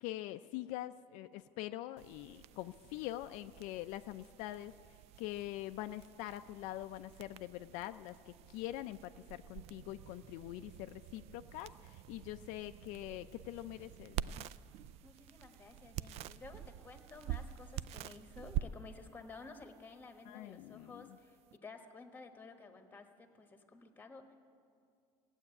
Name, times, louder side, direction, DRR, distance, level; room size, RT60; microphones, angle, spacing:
voice 1, 0.0-4.7 5.2-14.5 20.3-21.2, left 15 dB, 75° left, 9 dB, 0.4 m, -44 dB
sound 1, 2.0-21.6, right 11 dB, 55° right, 0.4 m, -47 dB
voice 2, 15.0-24.4, left 3 dB, 15° left, 6 dB, 1.3 m, -53 dB
17.0 x 8.1 x 9.7 m, 2.3 s
cardioid pair, 140°, 13 cm